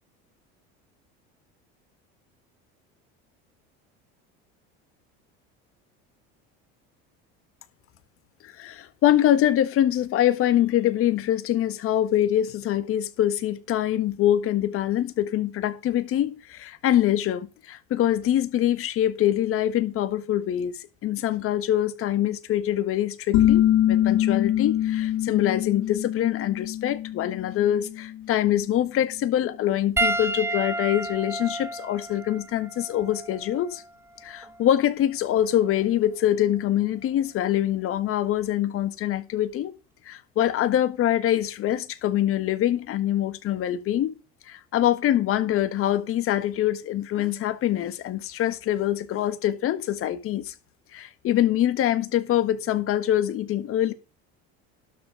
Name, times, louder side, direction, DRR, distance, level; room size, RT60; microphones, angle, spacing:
voice 1, 8.4-33.8 34.2-39.7 40.0-44.2 44.4-50.5 50.9-53.9, left 12 dB, 50° left, 1.5 m, -24 dB
sound 1, 23.3-28.7, left 12 dB, 70° left, 1.4 m, -24 dB
Piano, 30.0-34.6 35.6-35.8 37.7-37.8, right 2 dB, 10° right, 0.7 m, -31 dB
12.0 x 6.3 x 4.8 m
cardioid pair, 125°, 29 cm